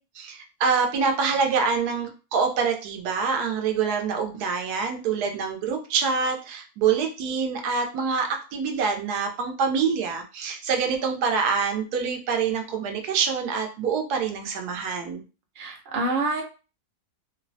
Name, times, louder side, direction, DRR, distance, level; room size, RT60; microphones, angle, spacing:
voice 1, 0.1-15.2, right 5 dB, 85° right, 3 dB, 1.1 m, -26 dB
voice 2, 15.6-16.4, right 2 dB, 55° right, 2 dB, 0.6 m, -26 dB
3.0 x 2.0 x 2.6 m, 0.33 s
omnidirectional pair, 1.7 m